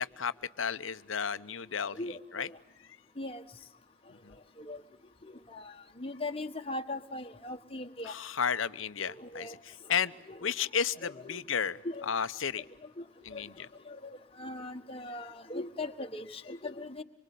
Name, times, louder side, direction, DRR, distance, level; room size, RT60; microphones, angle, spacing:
voice 1, 0.0-2.5 4.2-4.3 8.0-10.1 10.4-12.6 13.2-13.7, left 7 dB, 85° left, 13 dB, 0.9 m, -33 dB
voice 2, 1.9-2.6 3.2-3.4 4.6-4.8 5.5-5.6 6.0-8.1 9.2-9.6 10.3-10.5 11.0-11.4 11.8-12.1 13.0-13.1 13.3-13.4 13.9-17.0, left 2 dB, 30° left, 4 dB, 1.5 m, -39 dB
25.5 x 24.5 x 8.4 m, 0.89 s
head